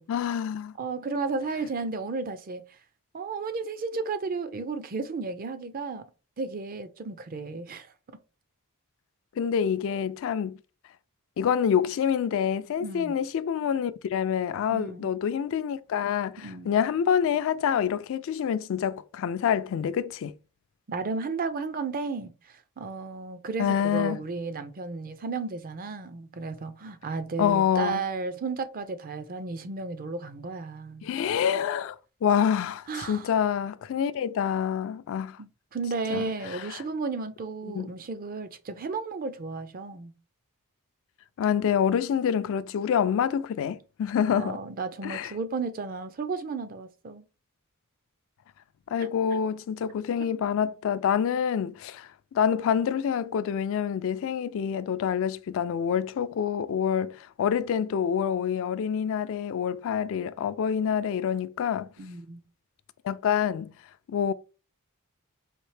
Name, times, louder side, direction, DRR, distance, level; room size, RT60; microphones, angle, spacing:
voice 1, 0.1-0.8 9.4-10.6 11.4-20.3 23.6-24.2 27.4-28.0 31.0-35.4 36.1-36.8 37.7-37.9 41.4-44.6 45.0-45.3 48.9-61.9 63.0-63.7 64.1-64.3, left 8 dB, 60° left, 0.3 m, -27 dB
voice 2, 0.8-2.6 3.1-6.0 6.4-7.9 12.8-13.2 14.7-15.1 16.4-16.8 20.9-31.1 32.9-33.3 35.4-40.1 44.3-47.2 49.3-49.4 50.2-50.3 62.0-62.4, right 4 dB, 40° right, 0.5 m, -33 dB
4.3 x 2.7 x 3.2 m
head